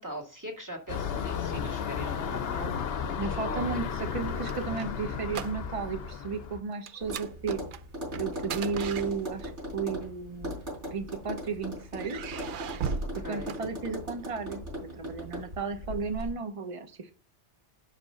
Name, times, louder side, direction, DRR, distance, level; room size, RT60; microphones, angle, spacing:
voice 1, 0.0-2.8 3.4-3.7 13.0-13.5, right 1 dB, 15° right, -1 dB, 2.0 m, -40 dB
sound 1, 0.9-6.6, left 7 dB, 65° left, 0.9 m, -33 dB
voice 2, 3.2-7.6 8.2-10.6 10.8-12.4 13.1-17.1, right 5 dB, 30° right, 8 dB, 0.9 m, -34 dB
sound 2, 4.2-6.0 6.2-6.5 6.9-9.6 10.5-11.4 11.9-14.2, right 6 dB, 60° right, 0.6 m, -38 dB
Tap, 7.0-16.3, equal, 80° right, 4.4 m, -39 dB
6.0 x 5.1 x 5.6 m, 0.37 s
omnidirectional pair, 1.2 m